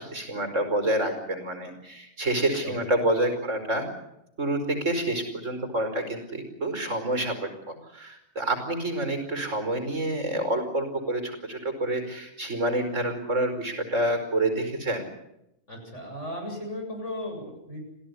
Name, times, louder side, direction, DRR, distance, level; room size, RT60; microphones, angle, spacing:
voice 1, 0.0-3.8 4.4-7.3 7.7-15.1, right 1 dB, 85° right, 7 dB, 5.1 m, -28 dB
voice 2, 15.7-17.8, left 1 dB, 75° left, 2 dB, 8.4 m, -36 dB
27.0 x 17.0 x 9.8 m, 0.85 s
omnidirectional pair, 1.3 m